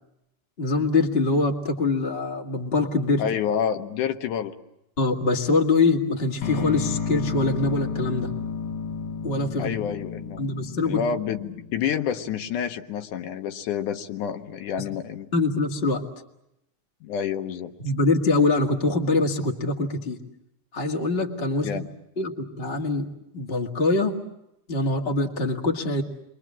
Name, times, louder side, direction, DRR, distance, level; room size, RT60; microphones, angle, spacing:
voice 1, 0.6-3.2 5.0-8.3 9.2-9.7 10.4-11.0 15.3-16.0 17.8-20.2 20.7-21.7 22.2-23.1 23.3-24.2 24.7-26.0, left 3 dB, 25° left, 1 dB, 1.7 m, -24 dB
voice 2, 3.2-4.5 9.6-10.5 10.9-15.3 17.0-17.7 21.6-21.9, left 8 dB, 85° left, 6 dB, 2.6 m, -28 dB
sound 1, 6.4-12.4, left 5 dB, 55° left, 1.9 m, -32 dB
29.5 x 23.0 x 7.4 m, 0.84 s
omnidirectional pair, 3.4 m